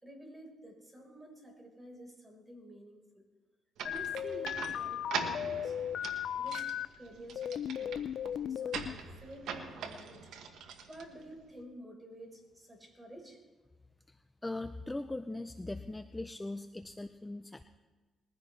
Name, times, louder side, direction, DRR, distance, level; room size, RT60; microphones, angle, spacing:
voice 1, 0.0-3.3 3.8-5.8 6.4-6.6 7.0-7.9 8.2-10.3 10.9-13.4, equal, 10° right, 1 dB, 4.6 m, -50 dB
sound 1, 3.8-6.8 7.3-8.9, left 9 dB, 65° left, 0.4 m, -36 dB
sound 2, 3.8-11.6, right 6 dB, 80° right, 1.5 m, -43 dB
voice 2, 14.4-17.6, left 2 dB, 15° left, 9 dB, 0.6 m, -40 dB
21.0 x 15.0 x 3.4 m, 1.3 s
cardioid pair, 90°, 0 cm